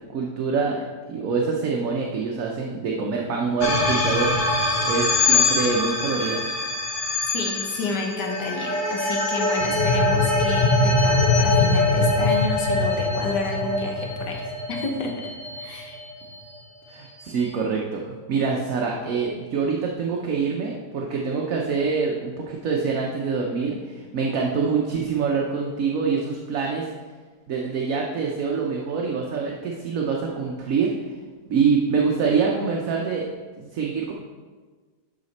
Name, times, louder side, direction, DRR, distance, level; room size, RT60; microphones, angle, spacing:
voice 1, 0.1-4.5 4.8-6.4 16.9-26.8 27.5-30.9 31.5-33.3 33.6-34.1, right 5 dB, 60° right, -1 dB, 1.1 m, -25 dB
sound 1, 3.6-16.0, left 2 dB, 35° left, 1.1 m, -22 dB
voice 2, 7.3-15.1 15.6-16.0, left 3 dB, 85° left, 1 dB, 1.7 m, -31 dB
11.5 x 5.1 x 4.2 m, 1.4 s
omnidirectional pair, 1.8 m